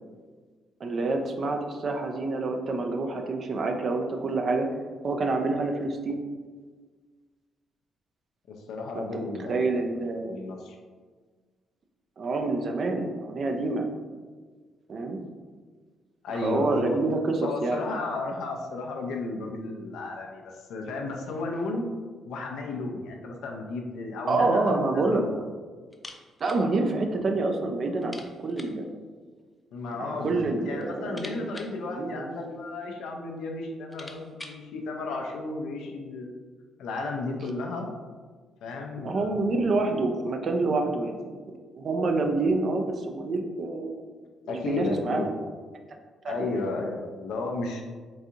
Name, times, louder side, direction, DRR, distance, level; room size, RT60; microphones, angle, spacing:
voice 1, 0.8-4.7 5.0-6.2 8.9-10.4 12.2-13.9 14.9-15.2 16.4-17.8 24.3-25.2 26.4-28.9 30.0-31.7 32.0-32.3 39.0-41.4 41.8-44.0 44.4-45.5 46.2-46.5, right 3 dB, 50° right, 4 dB, 0.4 m, -27 dB
voice 2, 8.5-9.6 10.2-10.8 16.2-17.1 17.4-21.9 22.2-25.3 29.7-30.4 30.7-36.3 36.8-37.9 38.6-39.5 39.9-40.0 44.5-45.3 46.3-47.8, left 3 dB, 80° left, 2 dB, 0.5 m, -33 dB
sound 1, 25.9-26.7 26.9-27.0 27.4-27.5 28.0-28.9 29.8-30.4 30.7-32.7 33.4-33.5 33.7-34.7, left 1 dB, 15° left, 0.4 m, -47 dB
3.9 x 2.4 x 2.7 m, 1.5 s
cardioid pair, 75°, 0 cm